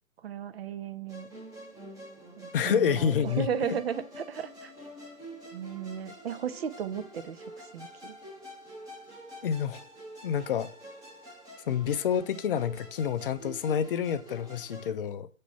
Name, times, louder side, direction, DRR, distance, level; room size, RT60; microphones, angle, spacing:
voice 1, 0.2-1.3 2.4-4.7 5.5-8.2, right 8 dB, 50° right, 0.5 m, -35 dB
Musical instrument, 1.1-14.9, equal, 10° right, 1.1 m, -47 dB
voice 2, 2.5-3.8 9.4-9.8 10.2-10.7 11.7-15.3, left 8 dB, 45° left, 0.5 m, -28 dB
5.9 x 3.2 x 5.4 m
figure-of-eight pair, 130°, 41 cm